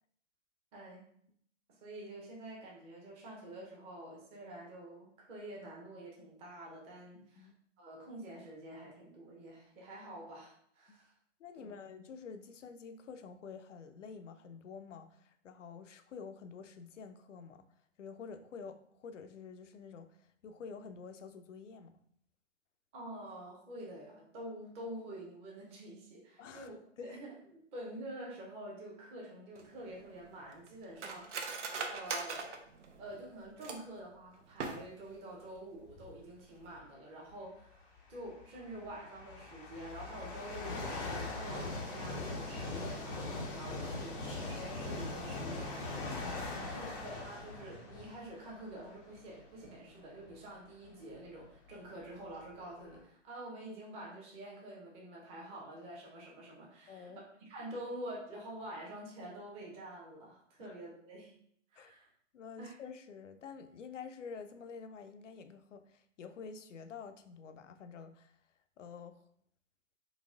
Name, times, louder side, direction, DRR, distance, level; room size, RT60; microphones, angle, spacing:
voice 1, 0.7-1.0 1.7-7.5 7.8-11.1 11.6-11.7 22.9-26.8 27.0-32.7 33.0-46.0 46.5-61.3 61.7-62.1 62.6-62.7, right 1 dB, 15° right, -3 dB, 0.7 m, -47 dB
voice 2, 7.1-7.6 10.9-11.0 11.4-17.7 18.0-22.0 26.4-27.2 46.5-47.1 56.9-57.2 60.6-60.7 61.8-61.9 62.3-68.3 68.8-69.2, left 5 dB, 70° left, 8 dB, 0.5 m, -49 dB
Cutlery silverware, 29.5-34.0 34.5-35.2 35.5-35.6 35.9-36.3 36.6-36.8, right 4 dB, 70° right, 0.6 m, -41 dB
sound 1, 35.9-36.2 37.3-37.4 38.2-49.6 50.2-50.3 51.1-51.2 51.4-53.0, left 2 dB, 15° left, 0.4 m, -41 dB
4.0 x 2.9 x 2.4 m, 0.66 s
figure-of-eight pair, 125°, 38 cm